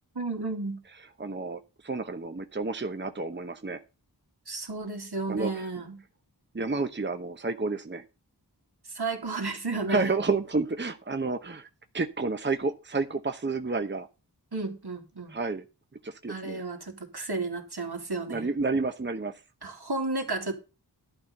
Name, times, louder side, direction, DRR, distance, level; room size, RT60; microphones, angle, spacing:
voice 1, 0.1-0.8 4.5-6.0 8.8-10.2 14.5-15.4 16.3-18.5 19.6-20.5, right 3 dB, 70° right, 2.6 m, -33 dB
voice 2, 1.2-3.8 5.3-5.5 6.5-8.0 9.9-11.7 11.9-14.1 15.3-15.6 16.0-16.6 18.3-19.3, right 3 dB, 25° right, 0.9 m, -30 dB
11.5 x 4.3 x 7.9 m
wide cardioid pair, 50°, 41 cm